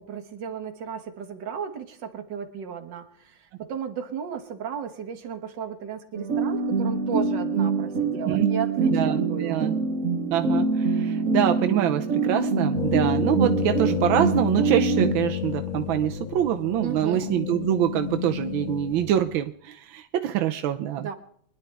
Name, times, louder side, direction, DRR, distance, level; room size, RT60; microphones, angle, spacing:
voice 1, 0.0-9.6 16.8-17.2 21.0-21.1, right 7 dB, 65° right, 7 dB, 2.0 m, -34 dB
sound 1, 6.1-15.1, right 4 dB, 50° right, 1.2 m, -25 dB
voice 2, 8.9-9.7 10.3-21.1, right 11 dB, 90° right, 7 dB, 1.5 m, -25 dB
sound 2, 12.8-19.4, left 11 dB, 85° left, 1.8 m, -31 dB
24.5 x 11.0 x 3.4 m, 0.64 s
omnidirectional pair, 2.1 m